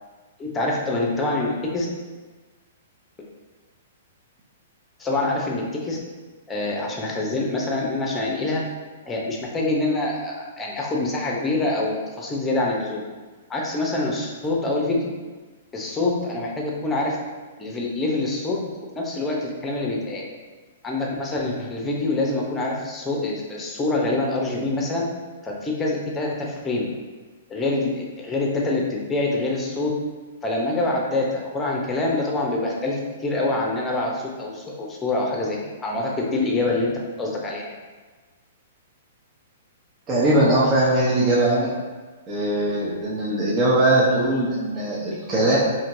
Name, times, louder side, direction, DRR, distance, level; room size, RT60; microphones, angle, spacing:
voice 1, 0.4-1.5 1.7-1.9 5.0-6.0 6.5-8.6 9.0-13.0 13.5-15.1 15.7-17.2 17.6-18.6 19.0-20.2 20.8-25.0 25.4-26.8 27.5-29.9 30.4-36.9 37.2-37.7, left 2 dB, 15° left, -2 dB, 0.8 m, -25 dB
voice 2, 40.1-41.7 42.3-45.6, right 1 dB, 30° right, -8 dB, 0.9 m, -20 dB
4.3 x 2.9 x 2.7 m, 1.3 s
hypercardioid pair, 120°, 0 cm